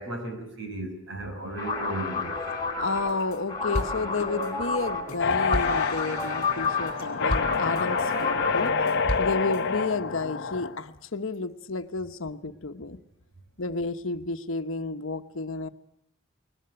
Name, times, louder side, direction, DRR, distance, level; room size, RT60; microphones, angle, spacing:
voice 1, 0.0-2.4, right 1 dB, 65° right, 6 dB, 5.5 m, -35 dB
sound 1, 1.5-8.9, left 4 dB, 20° left, 6.6 m, -31 dB
voice 2, 2.8-8.7 9.2-13.0 13.6-15.7, left 3 dB, 75° left, 8 dB, 1.1 m, -31 dB
sound 2, 2.9-3.4 3.7-8.2 8.7-9.6, equal, 40° left, 3.6 m, -35 dB
sound 3, 5.2-10.8, left 4 dB, 55° left, 0.8 m, -28 dB
21.5 x 20.0 x 7.8 m, 0.72 s
head